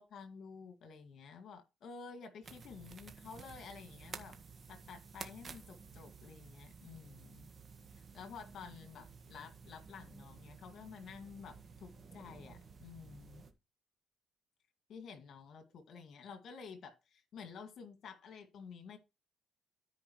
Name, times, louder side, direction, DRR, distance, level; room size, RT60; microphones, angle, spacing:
voice 1, 0.0-4.4 4.7-7.5 8.1-13.4 14.9-19.0, left 5 dB, 65° left, 2.1 m, -51 dB
sound 1, 2.4-13.5, right 5 dB, 45° right, 1.5 m, -53 dB
14.0 x 5.0 x 3.2 m
cardioid pair, 90°, 0 cm